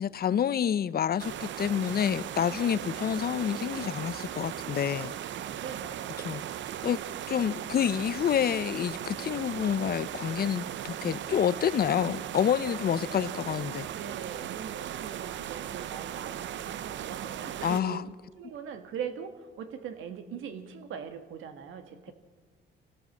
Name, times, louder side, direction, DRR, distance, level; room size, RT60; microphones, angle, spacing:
voice 1, 0.0-5.1 6.2-6.4 6.8-7.0 7.3-13.9 17.6-18.0, left 9 dB, 50° left, 0.7 m, -28 dB
sound 1, 1.2-17.8, right 11 dB, 70° right, 0.7 m, -37 dB
voice 2, 5.6-6.4 13.9-22.1, right 7 dB, 85° right, 1.8 m, -41 dB
26.5 x 16.5 x 7.3 m
cardioid pair, 90°, 20 cm